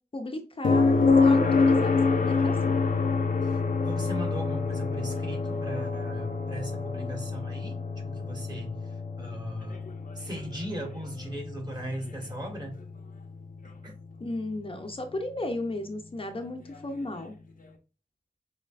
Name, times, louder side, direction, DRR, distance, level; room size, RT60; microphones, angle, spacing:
voice 1, 0.1-2.8 14.2-17.3, left 1 dB, 40° left, 5 dB, 0.6 m, -35 dB
sound 1, 0.6-14.5 16.7-16.8, left 4 dB, 85° left, 0.7 m, -27 dB
voice 2, 3.4-9.9 10.1-12.8 13.8-13.9, equal, 30° right, 1 dB, 1.7 m, -38 dB
6.4 x 2.9 x 2.5 m, 0.35 s
wide cardioid pair, 105°, 14 cm